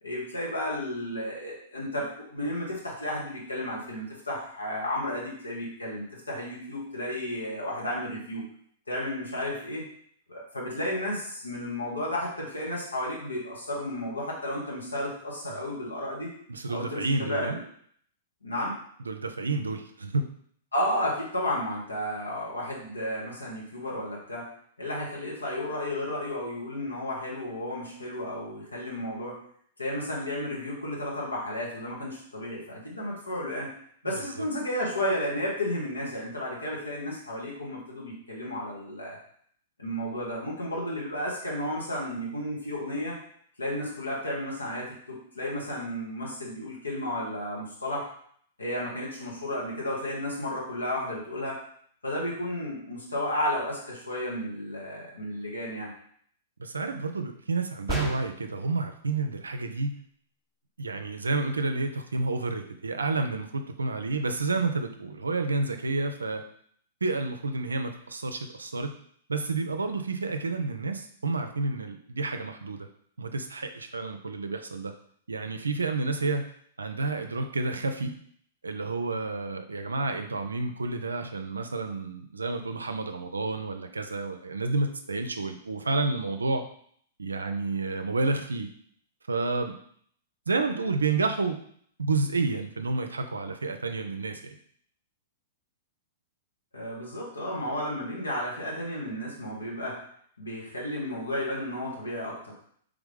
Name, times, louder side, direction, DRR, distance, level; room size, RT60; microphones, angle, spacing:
voice 1, 0.0-8.4 8.9-9.8 10.3-16.3 16.7-17.6 18.4-18.7 20.7-24.5 24.8-29.4 29.8-33.7 34.0-39.2 39.8-43.2 43.6-48.1 48.6-51.6 52.0-55.9 96.7-100.0 100.4-102.5, left 1 dB, 85° left, -4 dB, 1.5 m, -33 dB
voice 2, 16.5-17.6 19.1-20.3 34.4-34.5 56.6-60.0 60.8-66.4 67.0-69.0 69.3-72.9 73.2-74.9 75.3-76.5 76.8-78.1 78.6-86.6 87.2-88.7 89.3-89.7 90.5-91.6 92.0-94.6, right 3 dB, 80° right, 7 dB, 0.4 m, -30 dB
sound 1, 57.9-58.6, right 2 dB, ahead, 0.8 m, -33 dB
3.5 x 3.4 x 3.5 m, 0.62 s
figure-of-eight pair, 105°, 0 cm